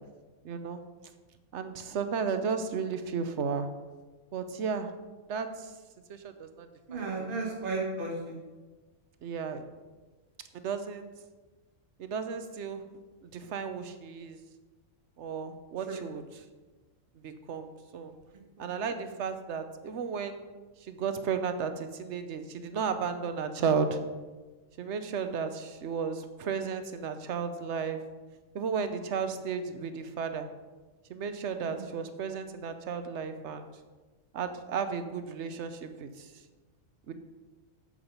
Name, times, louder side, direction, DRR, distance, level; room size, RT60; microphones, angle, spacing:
voice 1, 0.4-0.8 1.5-3.7 4.3-4.9 5.3-5.7 6.1-6.7 6.9-7.3 9.2-9.6 10.5-11.1 12.0-12.8 13.2-14.4 15.2-16.4 17.2-18.1 18.6-20.4 20.9-24.0 24.8-28.0 28.5-30.4 31.1-33.7 34.3-36.3 37.1-37.2, right 6 dB, 60° right, 9 dB, 1.0 m, -34 dB
voice 2, 6.9-8.4 15.9-16.0 18.6-18.7 31.7-31.9, right 3 dB, 40° right, -2 dB, 1.6 m, -34 dB
7.9 x 7.5 x 5.3 m, 1.3 s
omnidirectional pair, 1.4 m